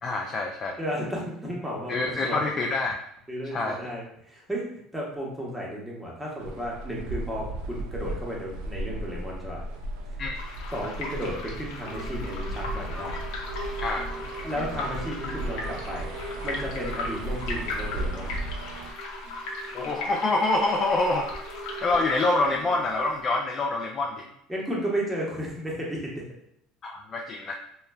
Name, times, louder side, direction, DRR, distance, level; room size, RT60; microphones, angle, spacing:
voice 1, 0.0-0.8 1.9-3.0 3.5-3.9 10.2-10.4 13.8-14.1 19.7-21.3 21.8-24.3 26.8-27.5, left 2 dB, 35° left, 1 dB, 0.3 m, -26 dB
voice 2, 0.8-2.4 3.3-9.6 10.7-13.1 14.4-16.1 16.4-18.3 24.5-26.2, equal, 5° right, -4 dB, 0.9 m, -33 dB
sound 1, 6.4-18.9, right 1 dB, 80° right, 0.4 m, -36 dB
sound 2, 10.3-22.5, left 3 dB, 75° left, 0.6 m, -38 dB
sound 3, 11.8-23.2, right 2 dB, 50° right, 0.8 m, -42 dB
3.0 x 2.2 x 2.2 m, 0.75 s
supercardioid pair, 110°, 0 cm